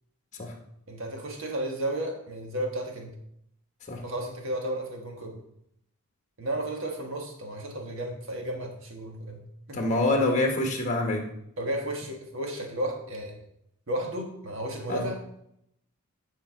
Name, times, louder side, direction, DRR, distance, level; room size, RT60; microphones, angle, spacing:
voice 1, 0.9-3.1 4.0-5.4 6.4-9.4 9.7-9.8 11.6-13.4 13.9-15.2, right 1 dB, 60° right, 2 dB, 1.6 m, -33 dB
voice 2, 9.7-11.2 14.9-15.0, left 2 dB, 35° left, 2 dB, 1.4 m, -25 dB
10.5 x 4.6 x 4.6 m, 0.76 s
head